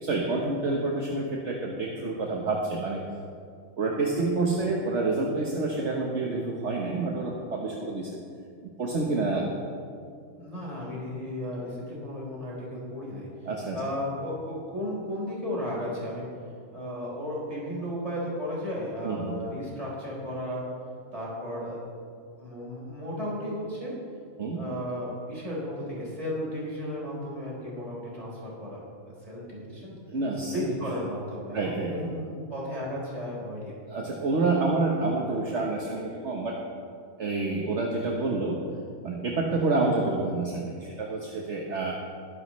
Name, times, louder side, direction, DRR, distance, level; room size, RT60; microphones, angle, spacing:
voice 1, 0.0-3.0 3.8-8.1 8.6-9.5 13.4-13.8 19.0-19.4 24.4-24.6 30.1-30.7 31.5-32.0 33.9-36.6 37.2-38.6 39.0-41.9, right 3 dB, 60° right, -1 dB, 1.5 m, -28 dB
voice 2, 10.4-13.3 13.7-16.3 16.7-20.6 21.1-21.9 22.4-23.9 24.5-30.0 30.5-33.8 39.5-39.7, left 1 dB, 25° right, -6 dB, 4.3 m, -34 dB
21.0 x 11.0 x 3.2 m, 2.3 s
omnidirectional pair, 1.4 m